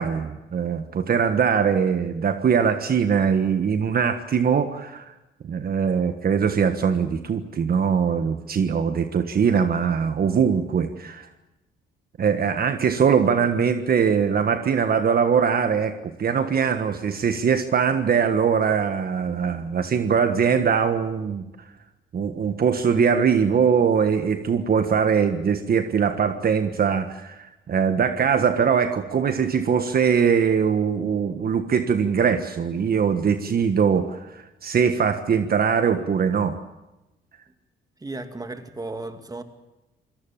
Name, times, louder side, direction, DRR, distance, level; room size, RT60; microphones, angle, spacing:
voice 1, 0.0-5.1 5.4-11.3 12.2-21.4 22.1-36.6, right 6 dB, 50° right, 8 dB, 1.4 m, -22 dB
voice 2, 38.0-39.4, right 2 dB, 20° right, 8 dB, 2.4 m, -34 dB
26.5 x 18.5 x 7.3 m, 0.99 s
cardioid pair, 90°, 20 cm